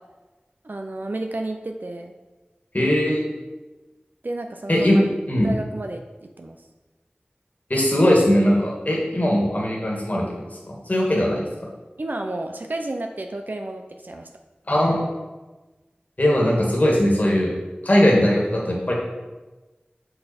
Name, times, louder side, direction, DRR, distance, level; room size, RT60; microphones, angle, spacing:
voice 1, 0.6-2.1 4.2-4.9 5.4-6.6 12.0-14.3, right 2 dB, 65° right, 4 dB, 0.5 m, -31 dB
voice 2, 2.7-3.2 4.7-5.5 7.7-11.5 14.7-15.1 16.2-17.5 17.8-18.9, equal, 50° left, -3 dB, 1.8 m, -20 dB
5.6 x 5.5 x 4.2 m, 1.2 s
wide cardioid pair, 40°, 3 cm